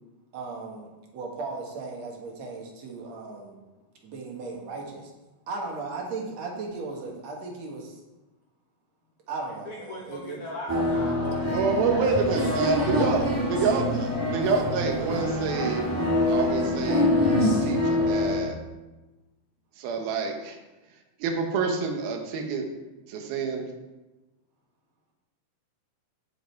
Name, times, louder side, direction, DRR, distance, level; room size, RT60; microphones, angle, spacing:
voice 1, 0.3-3.6 4.0-5.1 5.5-8.0 9.3-10.4 10.7-11.0, right 3 dB, 55° right, 0 dB, 2.6 m, -36 dB
voice 2, 9.6-11.5, left 1 dB, 85° left, -1 dB, 1.2 m, -38 dB
sound 1, 10.7-18.4, left 1 dB, 10° right, 1.4 m, -25 dB
voice 3, 11.5-15.9 16.3-18.6 19.8-20.6 21.2-22.7 23.1-23.7, right 5 dB, 85° right, 3 dB, 3.1 m, -28 dB
15.5 x 5.3 x 4.6 m, 1.1 s
omnidirectional pair, 4.2 m